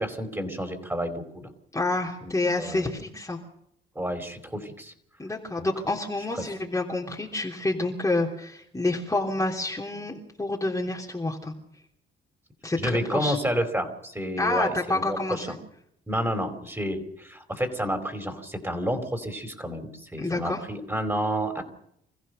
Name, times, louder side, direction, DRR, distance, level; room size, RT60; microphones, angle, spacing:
voice 1, 0.0-1.5 2.2-2.3 2.6-2.9 3.9-4.9 5.6-5.7 12.8-15.5 16.1-21.6, equal, 10° right, 6 dB, 4.7 m, -30 dB
voice 2, 1.7-3.4 5.2-11.5 12.6-13.4 14.4-15.6 20.2-20.6, left 2 dB, 15° left, -1 dB, 3.2 m, -28 dB
26.5 x 15.0 x 6.7 m, 0.72 s
cardioid pair, 90°, 20 cm